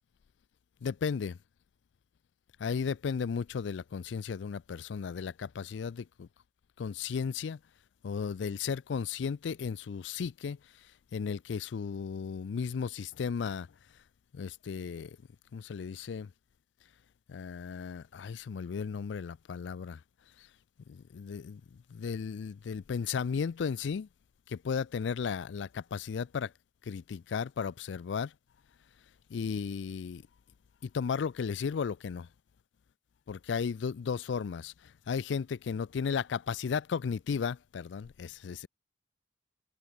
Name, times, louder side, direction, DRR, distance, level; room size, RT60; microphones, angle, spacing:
voice 1, 0.8-1.4 2.6-6.3 6.8-7.6 8.0-10.6 11.1-13.7 14.3-15.2 15.5-16.3 17.3-20.0 20.4-20.5 20.9-21.6 21.9-24.1 24.5-26.5 26.9-28.3 29.3-30.2 30.8-32.3 33.3-38.7, left 6 dB, 75° left, 0.4 m, -35 dB
head